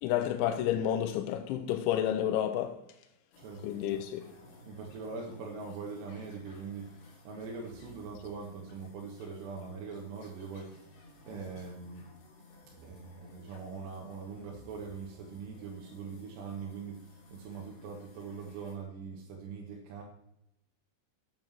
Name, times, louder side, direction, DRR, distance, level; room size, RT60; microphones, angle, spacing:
voice 1, 0.0-2.8 3.6-4.3, left 11 dB, 80° left, 3.0 m, -30 dB
sound 1, 3.3-18.7, left 2 dB, 60° left, 4.6 m, -56 dB
voice 2, 3.4-4.0 4.6-12.1 12.7-20.0, right 5 dB, 70° right, 3.3 m, -42 dB
7.8 x 7.5 x 7.3 m
omnidirectional pair, 5.5 m